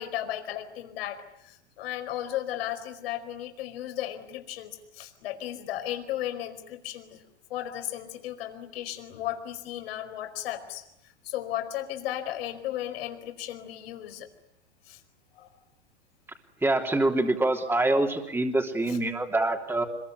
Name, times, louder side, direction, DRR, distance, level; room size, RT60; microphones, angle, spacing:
voice 1, 0.0-7.2 7.5-10.8 11.2-14.3 14.8-15.0 15.3-15.5 18.9-19.0, left 12 dB, 65° left, 7 dB, 4.8 m, -35 dB
voice 2, 16.6-19.9, right 2 dB, 5° right, 3 dB, 3.3 m, -25 dB
26.5 x 23.0 x 9.7 m, 0.80 s
hypercardioid pair, 100°, 33 cm